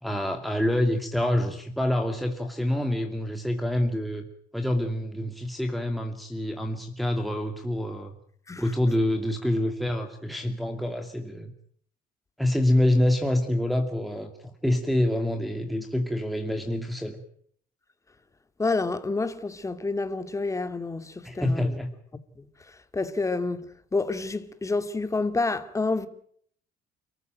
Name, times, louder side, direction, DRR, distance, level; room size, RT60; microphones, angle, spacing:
voice 1, 0.0-4.3 4.5-8.2 8.6-11.5 12.4-17.2 21.2-21.9, left 1 dB, ahead, 2.4 m, -26 dB
voice 2, 18.6-21.7 22.4-22.5 22.9-23.7 23.9-26.1, left 3 dB, 20° left, 2.3 m, -28 dB
29.0 x 14.5 x 9.2 m
cardioid pair, 110°, 17 cm